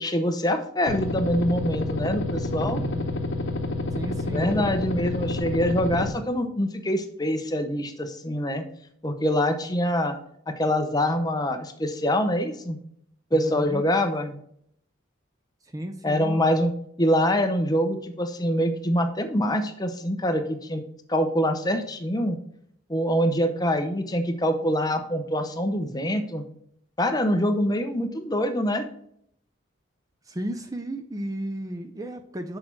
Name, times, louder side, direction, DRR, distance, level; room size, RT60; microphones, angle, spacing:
voice 1, 0.0-2.8 4.3-8.6 9.0-10.2 10.5-12.8 13.3-14.4 16.0-16.7 17.0-20.8 21.1-22.4 22.9-26.4 27.0-28.9, equal, 20° left, 7 dB, 0.7 m, -25 dB
sound 1, 0.9-6.1, left 2 dB, 80° left, 0.8 m, -29 dB
voice 2, 2.6-3.1 3.9-4.7 13.3-13.8 15.7-16.4 30.3-32.6, right 1 dB, 20° right, 6 dB, 0.5 m, -33 dB
6.5 x 4.5 x 5.8 m, 0.68 s
head